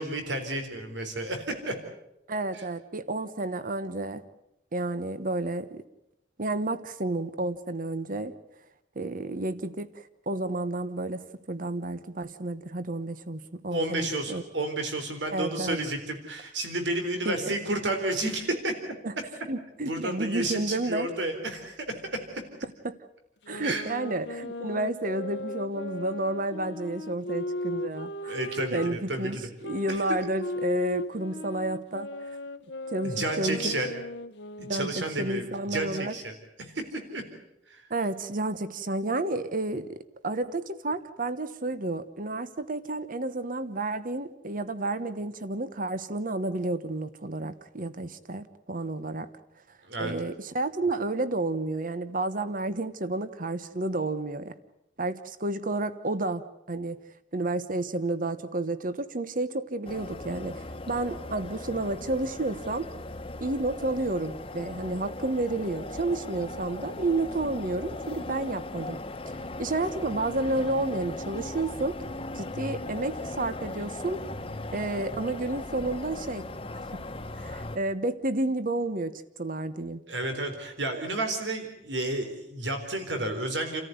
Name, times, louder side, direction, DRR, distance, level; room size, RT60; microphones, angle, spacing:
voice 1, 0.0-1.7 2.5-2.6 13.7-18.9 19.8-22.0 23.6-23.8 28.3-29.5 29.9-30.0 33.0-33.9 34.7-36.3 36.6-37.2 37.7-37.8 49.9-50.1 80.1-83.8, right 2 dB, 85° right, 6 dB, 4.0 m, -31 dB
voice 2, 2.3-4.2 4.7-5.8 6.4-8.3 8.9-14.4 15.3-15.8 17.2-17.5 19.0-19.1 19.5-21.1 22.8-22.9 23.5-28.3 28.7-29.4 29.6-32.1 32.9-33.7 34.6-36.1 37.9-49.3 50.0-54.5 55.0-57.0 57.3-62.9 63.4-69.0 69.6-72.0 72.3-74.2 74.7-76.4 77.4-80.0, right 2 dB, 50° right, 13 dB, 1.2 m, -31 dB
sound 1, 23.4-29.0 29.6-35.2, left 1 dB, 75° left, 1.0 m, -37 dB
sound 2, 59.8-77.8, left 2 dB, 30° left, 1.3 m, -38 dB
30.0 x 14.0 x 9.5 m, 0.86 s
head